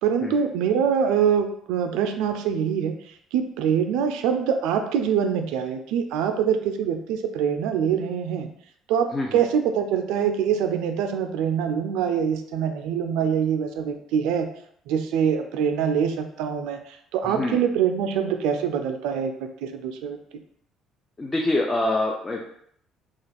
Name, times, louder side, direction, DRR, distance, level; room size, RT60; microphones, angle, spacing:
voice 1, 0.0-3.0 3.3-8.5 8.9-14.5 14.9-19.3 19.6-20.2, right 7 dB, 85° right, 7 dB, 0.3 m, -24 dB
voice 2, 17.3-17.6 21.2-22.5, left 2 dB, 25° left, 0 dB, 0.4 m, -25 dB
2.3 x 2.3 x 3.3 m, 0.67 s
supercardioid pair, 85°, 0 cm